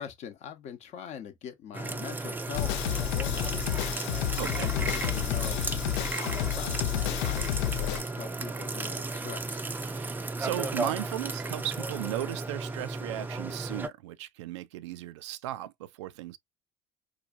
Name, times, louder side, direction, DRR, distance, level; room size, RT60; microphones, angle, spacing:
voice 1, 0.0-5.6 6.1-9.7, left 7 dB, 45° left, 0.9 m, -43 dB
sound 1, 1.7-13.9, right 3 dB, 10° right, 0.5 m, -34 dB
sound 2, 2.5-8.0, left 14 dB, 60° left, 0.4 m, -30 dB
voice 2, 4.4-4.7 9.8-16.4, right 14 dB, 65° right, 0.4 m, -36 dB
4.7 x 2.4 x 2.4 m
figure-of-eight pair, 60°, 16 cm